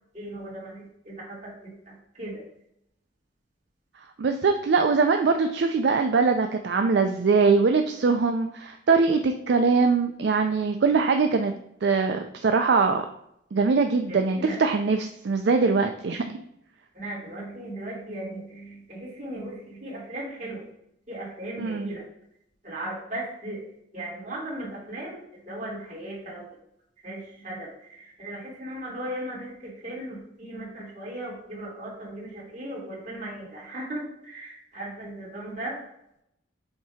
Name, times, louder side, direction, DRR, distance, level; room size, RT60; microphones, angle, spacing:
voice 1, 0.1-2.4 14.1-14.6 16.9-20.7 21.1-22.0 22.6-26.5 27.0-35.8, right 1 dB, 40° right, -5 dB, 2.5 m, -37 dB
voice 2, 4.2-11.5 11.8-13.1 13.5-16.2 21.6-21.9, right 4 dB, 60° right, 6 dB, 0.4 m, -22 dB
7.1 x 2.8 x 4.8 m, 0.78 s
head